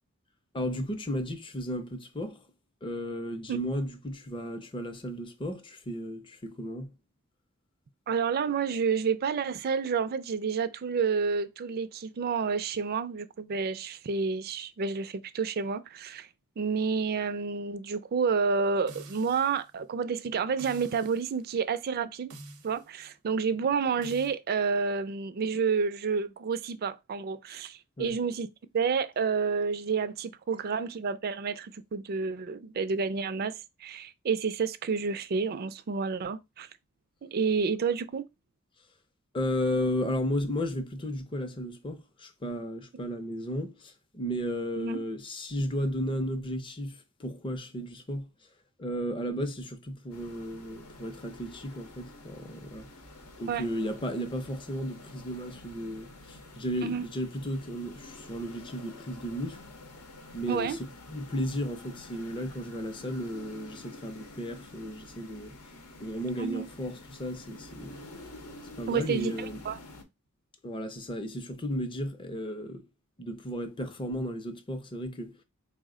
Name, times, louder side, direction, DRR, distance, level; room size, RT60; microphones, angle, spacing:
voice 1, 0.5-2.4 2.8-6.9 28.0-28.2 39.3-48.3 48.8-52.9 53.4-59.6 60.3-65.5 66.0-68.0 68.8-69.6 70.6-72.8 73.2-75.4, equal, 25° left, 0.5 m, -34 dB
voice 2, 8.1-16.3 16.6-22.3 22.6-28.5 28.7-36.7 37.2-38.2 44.8-45.0 53.5-53.6 56.8-57.0 60.5-60.8 66.4-66.7 68.9-69.8, right 5 dB, 45° right, 0.3 m, -29 dB
sound 1, 18.9-19.7 20.6-21.3 22.3-22.9 24.0-24.3, right 2 dB, 90° right, 0.8 m, -47 dB
sound 2, 50.1-70.0, left 2 dB, 85° left, 0.8 m, -49 dB
4.0 x 2.1 x 3.6 m
head